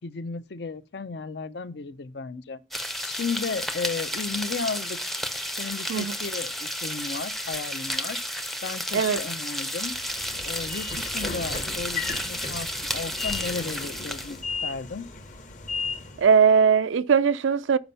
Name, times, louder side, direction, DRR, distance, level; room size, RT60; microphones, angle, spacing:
voice 1, 0.0-2.6 3.0-5.0 5.6-8.2 8.6-10.0 10.4-15.1, left 4 dB, 60° left, 0.5 m, -34 dB
sound 1, 2.7-14.4, equal, ahead, 0.5 m, -32 dB
Train / Sliding door, 9.8-16.3, left 4 dB, 40° left, 0.9 m, -35 dB
voice 2, 16.2-17.8, right 6 dB, 80° right, 0.4 m, -20 dB
6.9 x 5.2 x 5.5 m
head